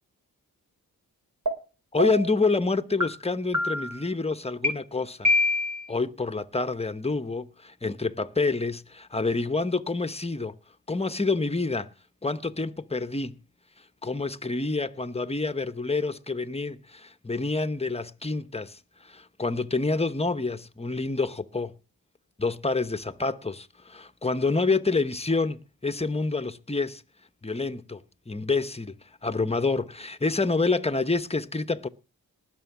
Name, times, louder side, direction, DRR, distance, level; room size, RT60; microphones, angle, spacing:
sound 1, 1.5-1.6 2.0-2.4 3.0-3.1 3.5-4.0 4.6-4.7 5.2-5.9, left 2 dB, 50° right, 4.0 m, -24 dB
voice 1, 1.9-5.3 5.9-10.6 10.9-11.9 12.2-13.4 14.0-18.8 19.0-21.8 22.4-27.0 27.4-28.9 29.2-31.9, left 3 dB, 15° left, 1.0 m, -28 dB
19.0 x 6.4 x 6.0 m
cardioid pair, 50°, 37 cm